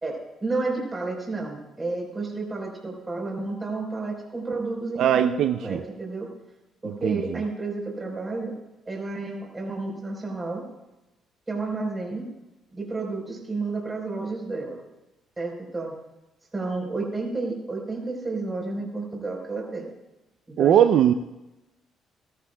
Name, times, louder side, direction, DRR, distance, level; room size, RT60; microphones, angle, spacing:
voice 1, 0.0-6.3 6.8-8.5 8.9-10.6 11.5-12.3 12.7-14.8 15.4-15.9 16.5-19.9 20.5-20.8, right 3 dB, 20° right, 0 dB, 4.1 m, -31 dB
voice 2, 5.0-5.8 6.8-7.4 20.6-21.1, right 10 dB, 70° right, 9 dB, 0.4 m, -20 dB
18.5 x 13.5 x 2.3 m, 1.0 s
cardioid pair, 95°, 0 cm